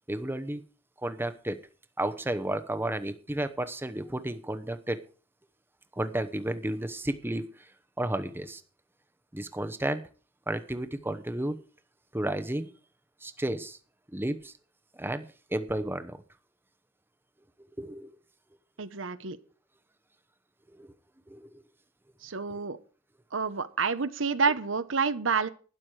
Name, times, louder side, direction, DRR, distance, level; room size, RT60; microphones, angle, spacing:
voice 1, 0.1-0.6 1.0-1.6 2.0-5.0 6.0-7.5 8.0-8.6 9.3-10.0 10.5-11.6 12.1-12.7 13.2-13.8 14.1-14.5 15.0-15.2 15.5-16.2 17.8-18.1 20.7-20.9 21.3-21.5 22.5-22.6, right 1 dB, 10° right, 10 dB, 0.9 m, -32 dB
voice 2, 18.8-19.4 22.2-22.8 23.3-25.5, right 5 dB, 75° right, 13 dB, 1.0 m, -28 dB
12.5 x 10.5 x 4.8 m, 0.38 s
head